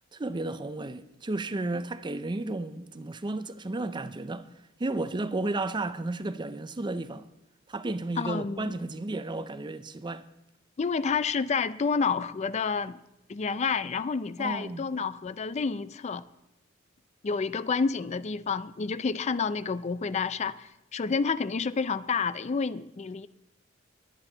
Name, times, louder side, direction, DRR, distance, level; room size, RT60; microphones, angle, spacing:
voice 1, 0.1-4.5 4.8-7.3 7.7-10.2 14.4-14.9, right 2 dB, 25° right, 0.5 m, -33 dB
voice 2, 8.2-8.7 10.8-13.0 13.3-16.2 17.2-23.3, left 5 dB, 35° left, 0.4 m, -29 dB
22.0 x 9.1 x 3.9 m
head